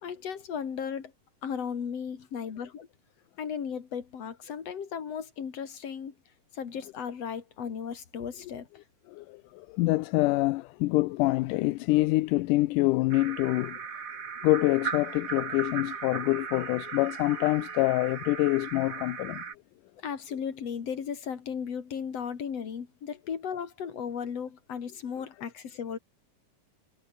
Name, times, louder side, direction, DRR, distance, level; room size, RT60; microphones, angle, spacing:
voice 1, 0.0-1.1 1.4-2.9 3.4-6.1 6.5-8.7 20.0-26.0, left 7 dB, 50° left, 3.6 m, -36 dB
voice 2, 9.1-13.8 14.4-19.4, left 19 dB, 80° left, 2.1 m, -26 dB
sound 1, 13.1-19.5, right 6 dB, 50° right, 0.9 m, -37 dB
omnidirectional pair, 4.0 m